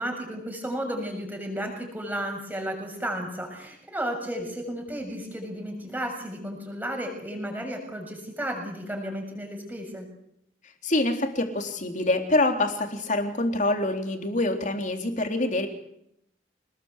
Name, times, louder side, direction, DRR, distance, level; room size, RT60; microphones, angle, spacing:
voice 1, 0.0-10.1, equal, 10° right, 2 dB, 6.9 m, -33 dB
voice 2, 10.8-15.7, left 2 dB, 45° left, 5 dB, 3.6 m, -25 dB
26.5 x 20.0 x 8.2 m, 0.77 s
head